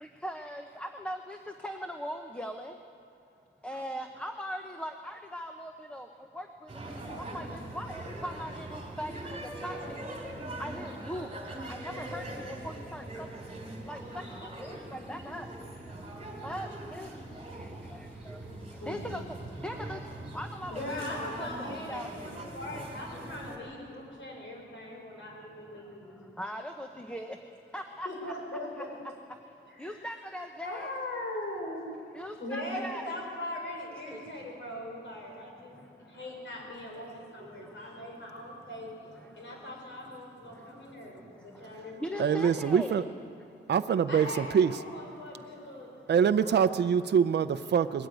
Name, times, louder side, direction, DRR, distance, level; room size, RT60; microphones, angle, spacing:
voice 1, 0.0-1.4 1.6-2.7 3.6-6.1 6.3-6.5 6.9-7.0 7.3-9.1 9.6-10.0 10.6-11.3 11.7-12.2 12.6-13.0 13.9-14.0 14.4-15.5 16.4-17.1 17.6-18.0 18.3-18.4 18.9-19.2 19.6-20.0 20.3-22.1 26.4-27.4 27.7-28.3 29.8-30.9 32.1-33.2 34.1-34.2 42.0-43.0, equal, 5° left, 4 dB, 0.8 m, -39 dB
sound 1, 6.7-23.6, right 1 dB, 30° right, 3.7 m, -42 dB
voice 2, 18.8-19.2 20.7-26.2 28.0-29.0 29.8-30.0 30.6-31.8 32.4-38.9 39.3-42.9 44.1-45.9 46.3-46.6, left 1 dB, 65° left, -1 dB, 5.5 m, -40 dB
voice 3, 42.2-43.0 43.7-44.8 46.1-48.1, right 7 dB, 55° right, 11 dB, 0.6 m, -25 dB
20.5 x 14.0 x 9.3 m, 2.5 s
wide cardioid pair, 150°, 20 cm